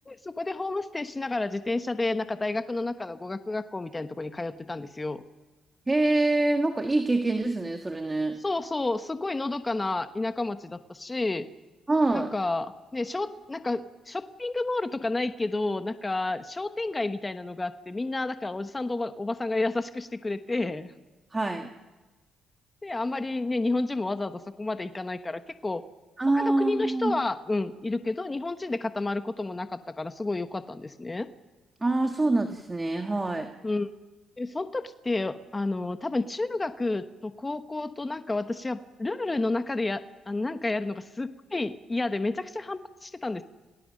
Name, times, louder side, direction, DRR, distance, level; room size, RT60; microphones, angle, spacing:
voice 1, 0.1-5.2 8.4-11.5 12.1-20.9 22.8-25.8 26.3-31.3 33.6-33.9 34.4-43.4, left 2 dB, 20° left, 9 dB, 1.0 m, -30 dB
voice 2, 5.9-8.4 11.9-12.3 21.3-21.7 26.2-27.2 31.8-33.5, right 2 dB, 20° right, 5 dB, 1.5 m, -25 dB
29.5 x 19.0 x 6.5 m, 1.2 s
cardioid pair, 90°, 0 cm